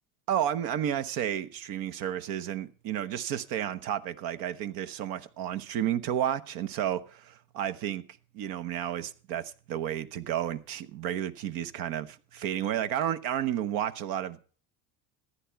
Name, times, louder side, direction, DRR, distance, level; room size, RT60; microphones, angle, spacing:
voice 1, 0.3-8.0 8.3-14.4, right 10 dB, 60° right, 1.1 m, -32 dB
14.5 x 10.0 x 4.6 m
supercardioid pair, 105°, 39 cm